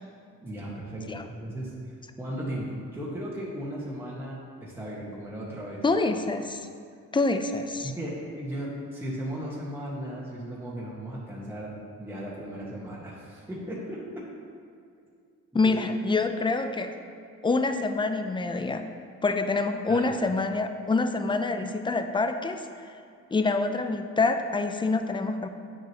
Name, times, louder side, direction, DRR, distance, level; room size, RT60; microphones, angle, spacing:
voice 1, 0.4-1.7 2.2-5.8 7.8-11.7 12.0-14.2 15.6-15.7 19.9-20.1, right 1 dB, 10° right, -6 dB, 1.4 m, -36 dB
voice 2, 5.8-6.6 7.1-7.9 15.5-16.9 17.4-18.9 19.2-22.7 23.3-25.5, left 3 dB, 15° left, 7 dB, 0.5 m, -26 dB
8.8 x 6.4 x 3.0 m, 2.2 s
cardioid pair, 90°, 30 cm